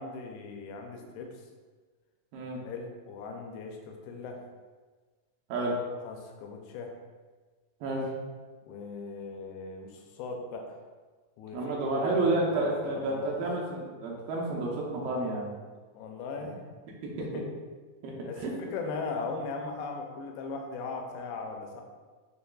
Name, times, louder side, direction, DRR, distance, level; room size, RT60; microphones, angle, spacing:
voice 1, 0.0-1.5 2.7-4.4 6.0-7.0 8.7-10.8 11.4-13.5 15.9-16.7 17.2-17.5 18.3-21.8, left 4 dB, 85° left, 3 dB, 2.5 m, -39 dB
voice 2, 11.5-15.5 17.0-17.1 18.0-18.5, right 2 dB, 80° right, -3 dB, 2.1 m, -30 dB
6.6 x 2.2 x 2.3 m, 1.4 s
omnidirectional pair, 4.4 m